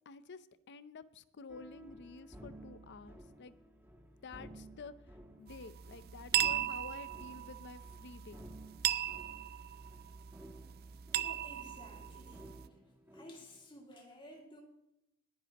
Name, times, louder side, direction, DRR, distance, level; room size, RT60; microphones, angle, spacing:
voice 1, 0.1-3.6 4.2-8.4, left 4 dB, 50° left, 14 dB, 0.6 m, -51 dB
sound 1, 1.5-13.7, right 1 dB, 10° right, 1.2 m, -55 dB
sound 2, 5.5-12.7, right 11 dB, 45° right, 0.4 m, -38 dB
voice 2, 10.8-12.8 13.1-14.6, left 1 dB, 25° left, 1 dB, 2.4 m, -54 dB
19.5 x 10.0 x 3.0 m, 0.84 s
head